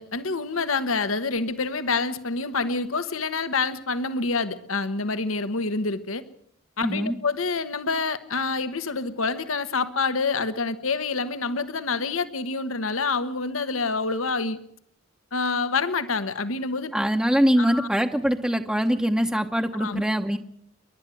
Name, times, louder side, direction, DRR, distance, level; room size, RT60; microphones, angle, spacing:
voice 1, 0.0-6.2 6.8-14.6 15.3-16.9 17.6-17.9 19.8-20.0, left 4 dB, 85° left, 11 dB, 1.3 m, -27 dB
voice 2, 6.8-7.2 16.9-20.4, equal, 5° right, 3 dB, 0.9 m, -23 dB
30.0 x 12.0 x 7.8 m, 0.68 s
head